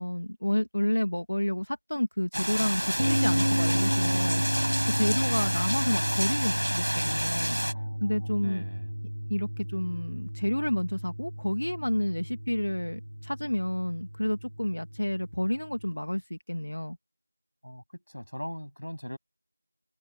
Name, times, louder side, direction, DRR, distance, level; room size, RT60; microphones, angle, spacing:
voice 1, 0.0-7.6 8.0-8.6 9.3-17.0, left 1 dB, 30° left, 2.1 m, -30 dB
sound 1, 2.3-7.7, equal, 55° right, 5.0 m, -30 dB
sound 2, 2.5-5.5, right 4 dB, 5° right, 3.1 m, -49 dB
sound 3, 3.0-15.9, equal, 80° right, 3.5 m, -32 dB
voice 2, 7.7-8.9 17.6-19.2, equal, 70° left, 7.8 m, -40 dB
open air
figure-of-eight pair, 180°, 0 cm